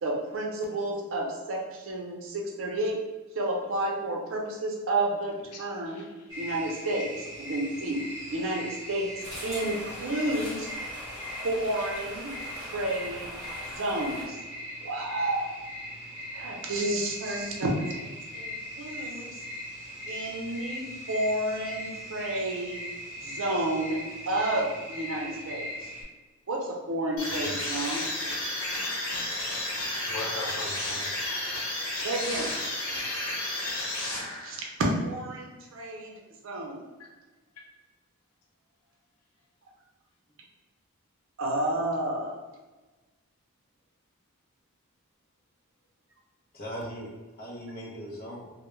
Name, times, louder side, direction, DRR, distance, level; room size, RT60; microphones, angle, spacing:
voice 1, 0.0-3.0 3.3-6.0 6.4-8.0 8.3-9.1 9.4-10.7 11.4-12.3 12.6-13.4 13.6-14.4 14.8-15.5 16.3-19.4 20.1-22.9 23.2-25.9 26.5-28.0 32.0-32.5 34.4-34.6 35.0-36.1 36.4-36.8 41.4-42.4, right 1 dB, 60° right, 0 dB, 0.5 m, -31 dB
voice 2, 5.5-6.3 8.2-8.4 11.8-11.9 30.1-31.1 33.0-33.1 33.5-33.6 37.0-37.1, left 2 dB, 90° left, 0 dB, 0.5 m, -40 dB
sound 1, 6.3-26.0, equal, 15° right, 0.8 m, -40 dB
sound 2, 9.2-14.2, left 1 dB, 20° left, 1.0 m, -42 dB
sound 3, 27.2-34.7, left 1 dB, 70° left, 0.9 m, -32 dB
voice 3, 27.3-27.6 46.5-48.5, equal, 45° left, -4 dB, 0.6 m, -40 dB
2.2 x 2.0 x 3.0 m, 1.2 s
head